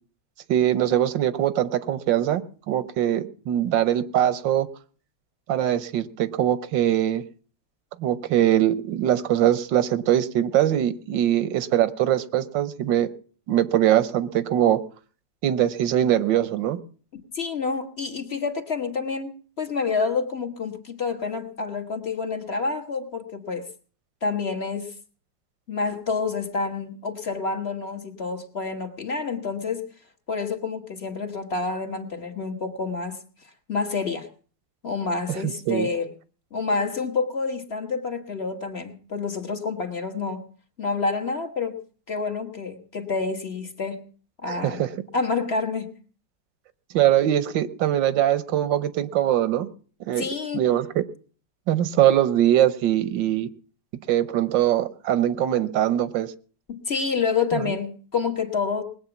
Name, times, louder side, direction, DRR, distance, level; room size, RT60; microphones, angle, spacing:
voice 1, 0.5-2.4 2.7-4.7 5.5-7.2 8.0-13.1 13.5-14.8 15.4-16.8 35.3-35.9 44.5-44.9 46.9-49.7 50.1-50.3 50.5-51.0 51.7-53.5 54.1-56.3 57.5-57.7, right 11 dB, 85° right, 15 dB, 1.6 m, -22 dB
voice 2, 17.1-23.7 24.2-24.9 25.7-29.9 30.3-33.2 33.7-34.3 34.8-36.1 36.5-40.5 40.8-41.8 42.1-44.0 44.4-44.8 45.1-45.9 50.2-50.7 56.7-58.8, left 4 dB, 35° left, 5 dB, 1.8 m, -28 dB
20.5 x 8.6 x 7.1 m, 0.42 s
omnidirectional pair, 2.0 m